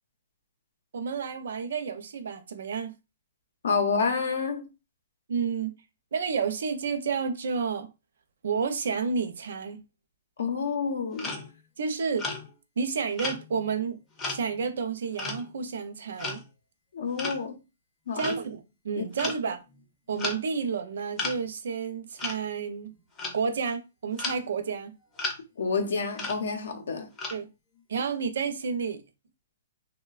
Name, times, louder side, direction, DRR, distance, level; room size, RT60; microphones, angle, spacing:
voice 1, 0.9-2.9 5.3-5.7 6.1-7.9 8.4-9.8 11.8-12.3 12.8-14.0 14.3-16.4 18.1-19.6 20.1-22.9 23.3-24.9 27.3-27.5 27.9-29.0, right 5 dB, 70° right, 0.5 m, -30 dB
voice 2, 3.6-4.7 10.4-11.4 16.9-17.5 18.1-18.3 19.0-19.3 25.6-27.1, left 5 dB, 80° left, 0.6 m, -29 dB
sound 1, 11.2-11.6 12.2-12.5 13.2-13.8 14.2-14.6 15.2-15.5 16.2-16.4 17.2-17.4 18.2-18.5 19.2-19.4 19.7-19.8 20.2-20.4 21.2-21.4 22.2-22.4 22.9-23.4 24.2-24.4 25.1-25.4 26.1-26.4 27.2-27.4, left 3 dB, 15° left, 0.5 m, -34 dB
3.0 x 2.1 x 2.3 m
hypercardioid pair, 170°, 0 cm